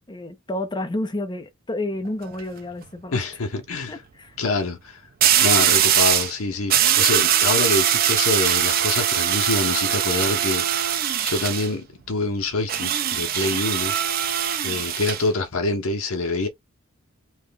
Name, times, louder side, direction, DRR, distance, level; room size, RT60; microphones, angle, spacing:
voice 1, 0.0-3.2 3.9-4.4, left 1 dB, 20° left, 0.6 m, -30 dB
sound 1, 2.1-2.4 5.2-6.3 6.7-11.7 12.7-15.2, right 10 dB, 45° right, 0.4 m, -21 dB
voice 2, 3.1-4.0 4.4-5.0 5.4-13.9 14.3-14.4 14.6-16.5, left 3 dB, 80° left, 0.8 m, -26 dB
3.1 x 2.3 x 3.3 m
head